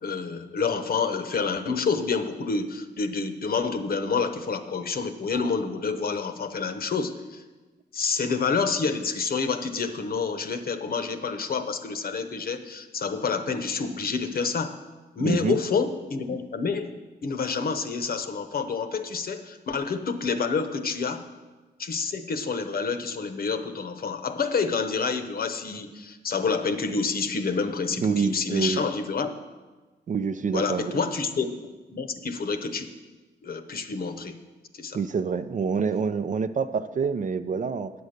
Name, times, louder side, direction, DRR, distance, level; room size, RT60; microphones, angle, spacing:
voice 1, 0.0-7.4 7.9-14.8 15.2-16.9 17.2-21.2 21.8-29.3 30.5-31.5 31.9-32.9 33.4-34.4 34.7-35.0, left 5 dB, 55° left, 8 dB, 0.9 m, -28 dB
voice 2, 15.2-15.6 28.0-28.8 30.1-31.0 34.9-37.9, right 5 dB, 45° right, 11 dB, 0.5 m, -27 dB
8.7 x 8.2 x 6.6 m, 1.2 s
cardioid pair, 105°, 18 cm